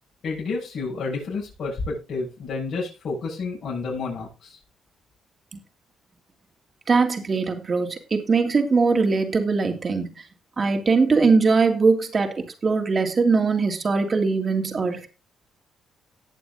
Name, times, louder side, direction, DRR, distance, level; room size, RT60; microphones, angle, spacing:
voice 1, 0.2-4.6, left 4 dB, 60° left, -6 dB, 7.7 m, -30 dB
voice 2, 6.9-10.1 10.6-15.1, right 4 dB, 35° right, 6 dB, 3.1 m, -21 dB
19.5 x 6.9 x 2.6 m, 0.30 s
cardioid pair, 90°, 0 cm